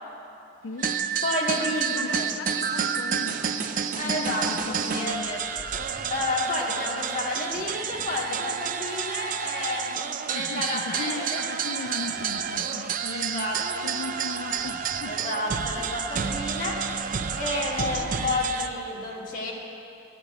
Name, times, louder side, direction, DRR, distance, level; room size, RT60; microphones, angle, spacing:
voice 1, 0.6-1.0 1.6-5.3 10.3-13.5 13.8-15.2 17.6-18.0, left 3 dB, 80° left, 6 dB, 0.5 m, -37 dB
sound 1, 0.8-18.7, right 7 dB, 45° right, 0.5 m, -30 dB
voice 2, 1.2-2.2 3.9-5.4 6.1-11.4 13.1-13.8 15.1-19.5, left 2 dB, 45° left, -3 dB, 2.2 m, -31 dB
sound 2, 4.0-8.8 9.3-16.0, equal, 15° right, 1.9 m, -51 dB
14.0 x 6.0 x 9.8 m, 2.9 s
head